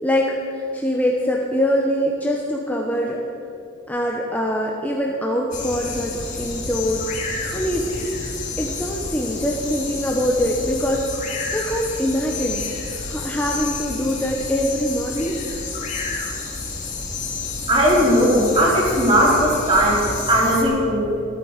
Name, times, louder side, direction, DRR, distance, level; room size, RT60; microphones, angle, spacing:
voice 1, 0.0-3.2 3.9-7.1 7.5-8.0 8.6-11.1 11.5-12.6 13.0-15.4, equal, 10° left, -2 dB, 1.0 m, -23 dB
sound 1, 5.5-20.6, left 3 dB, 35° left, 2.5 m, -30 dB
voice 2, 17.7-20.0 20.3-21.1, equal, 25° right, -5 dB, 4.0 m, -17 dB
15.0 x 13.0 x 6.6 m, 2.7 s
head